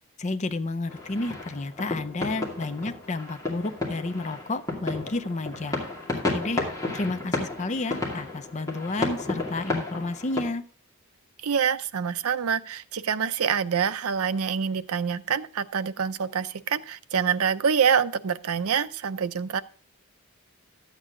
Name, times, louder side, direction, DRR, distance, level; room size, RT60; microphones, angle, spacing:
voice 1, 0.2-5.8 6.3-6.6 6.9-10.6, left 2 dB, 30° left, 11 dB, 0.5 m, -31 dB
sound 1, 0.9-10.4, left 2 dB, 15° left, 2.4 m, -32 dB
voice 2, 11.4-19.6, right 7 dB, 75° right, 12 dB, 0.5 m, -26 dB
12.0 x 8.2 x 3.7 m, 0.43 s
head